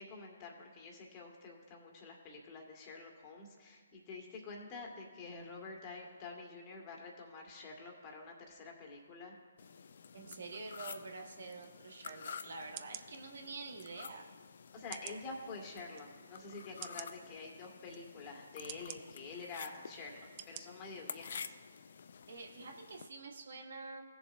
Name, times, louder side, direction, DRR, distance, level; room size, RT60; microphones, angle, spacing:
voice 1, 0.0-9.3 14.7-21.6, left 3 dB, 25° left, 1 dB, 1.9 m, -48 dB
sound 1, 9.6-23.1, left 6 dB, 55° left, 0.4 m, -51 dB
voice 2, 10.1-14.3 22.3-24.0, right 3 dB, 60° right, 2 dB, 1.3 m, -47 dB
sound 2, 12.0-12.2 12.8-13.1 13.8-13.9 14.9-15.2 15.9-16.0 16.8-17.1 17.9-18.0 18.7-19.0 19.7-19.8 20.4-20.6 21.1-21.2, right 12 dB, 35° right, 0.4 m, -47 dB
18.0 x 7.0 x 2.6 m, 1.5 s
figure-of-eight pair, 140°, 0 cm